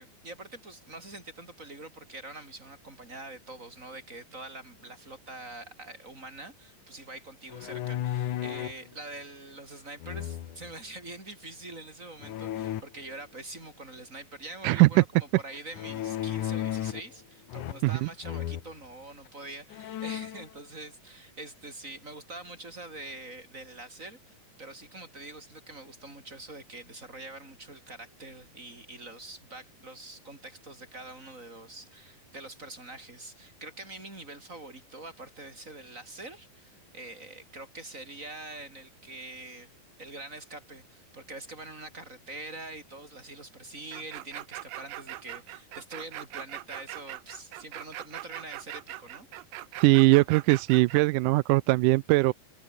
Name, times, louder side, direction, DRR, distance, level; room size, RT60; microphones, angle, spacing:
voice 1, 0.0-39.7 40.0-49.3, right 2 dB, 20° right, 6.5 m, -44 dB
sound 1, 7.5-8.8 10.0-10.7 12.2-12.8 15.7-17.1 17.5-18.0 18.2-18.7 19.3-19.4 19.7-20.5, left 12 dB, 65° left, 2.7 m, -34 dB
voice 2, 14.6-15.0 17.8-18.1 49.8-52.3, right 21 dB, 90° right, 1.8 m, -21 dB
sound 2, 43.9-51.0, right 15 dB, 75° right, 2.6 m, -41 dB
omnidirectional pair, 4.2 m